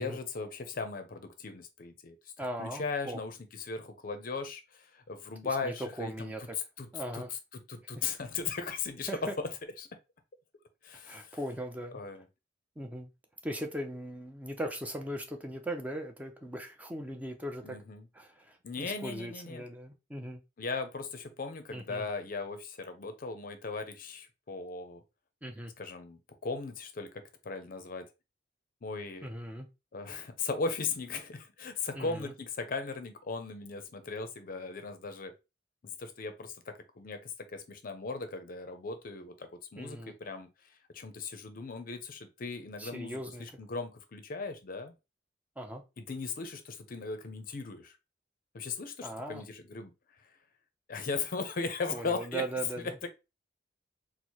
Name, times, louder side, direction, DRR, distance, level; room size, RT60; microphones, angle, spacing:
voice 1, 0.0-6.3 6.8-6.9 7.1-7.2 7.5-9.1 9.4-9.5 9.8-9.9 10.8-11.4 11.9-12.3 17.6-18.1 18.6-19.6 20.6-25.0 25.8-28.1 28.8-29.3 29.9-35.3 35.8-44.9 46.0-48.0 48.5-49.9 50.2-50.3 50.9-52.4, left 4 dB, 50° left, 0.5 m, -38 dB
voice 2, 2.4-3.2 5.6-6.6 6.9-7.3 7.9-8.1 9.1-9.3 11.1-12.0 12.8-13.1 13.4-17.8 18.1-20.4 21.7-22.0 25.4-25.7 29.2-29.7 31.9-32.3 39.7-40.1 42.8-43.4 45.6-45.8 49.0-49.4 51.9-52.9, right 1 dB, 10° right, 0.5 m, -39 dB
4.4 x 2.0 x 2.8 m
head